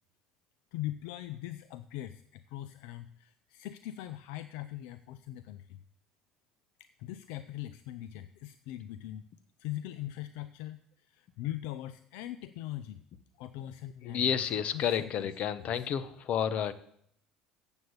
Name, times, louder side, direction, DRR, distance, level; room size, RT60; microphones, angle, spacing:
voice 1, 0.7-5.8 6.8-9.2 9.6-13.0 13.4-14.4 14.7-15.3 15.6-15.9, left 14 dB, 75° left, 13 dB, 0.4 m, -41 dB
voice 2, 14.0-16.7, left 8 dB, 55° left, 14 dB, 0.9 m, -30 dB
7.8 x 7.2 x 8.0 m, 0.67 s
hypercardioid pair, 75°, 3 cm